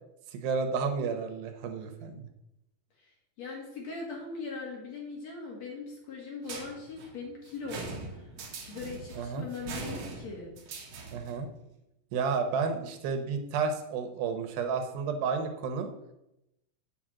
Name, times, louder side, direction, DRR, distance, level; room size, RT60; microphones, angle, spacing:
voice 1, 0.3-2.3 9.2-9.5 11.1-11.5 12.1-15.9, right 5 dB, 80° right, 6 dB, 2.7 m, -31 dB
voice 2, 3.4-8.3 8.6-10.5, left 4 dB, 50° left, -1 dB, 2.7 m, -40 dB
sound 1, 6.4-11.4, right 3 dB, 60° right, 2.4 m, -42 dB
7.8 x 5.0 x 7.4 m, 0.87 s
omnidirectional pair, 4.2 m